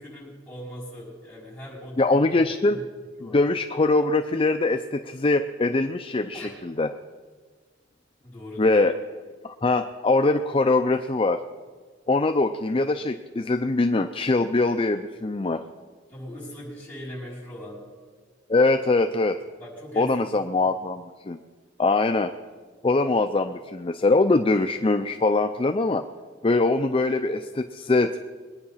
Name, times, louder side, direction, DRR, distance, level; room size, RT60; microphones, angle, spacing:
voice 1, 0.0-2.4 2.7-2.8 3.2-3.4 6.3-6.5 8.2-8.8 16.1-17.8 19.6-20.1 20.5-20.7, equal, 10° left, -5 dB, 5.4 m, -40 dB
voice 2, 2.0-2.8 3.3-6.9 8.6-8.9 9.4-11.4 12.1-15.6 18.5-19.4 20.0-21.4 21.8-22.3 22.8-26.0 26.4-28.2, left 3 dB, 30° left, 7 dB, 0.5 m, -22 dB
22.0 x 9.5 x 5.6 m, 1.5 s
head